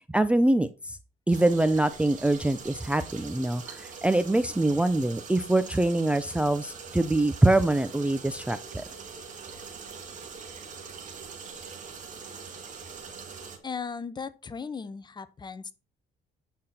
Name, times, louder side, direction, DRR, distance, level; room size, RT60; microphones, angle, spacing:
voice 1, 0.1-1.0 1.3-8.8, right 1 dB, 5° right, 0.5 m, -24 dB
sound 1, 1.3-13.6, right 5 dB, 50° right, 2.5 m, -43 dB
voice 2, 13.6-15.7, left 5 dB, 25° left, 0.8 m, -37 dB
8.7 x 5.6 x 4.3 m
cardioid pair, 110°, 17 cm